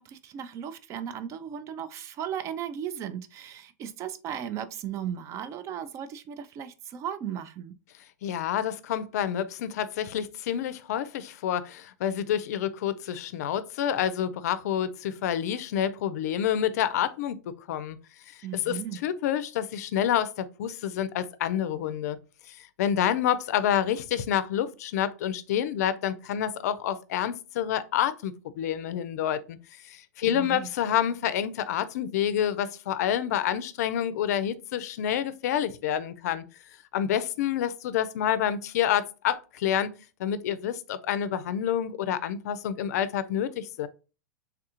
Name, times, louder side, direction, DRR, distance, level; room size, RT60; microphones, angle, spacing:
voice 1, 0.0-7.7 18.4-19.0 30.2-30.7, right 9 dB, 35° right, 0.4 m, -36 dB
voice 2, 8.2-18.0 18.7-22.2 22.5-29.6 29.8-36.5 36.9-39.9 40.2-43.9, left 10 dB, 70° left, 0.4 m, -28 dB
3.4 x 2.4 x 2.8 m
hypercardioid pair, 120°, 9 cm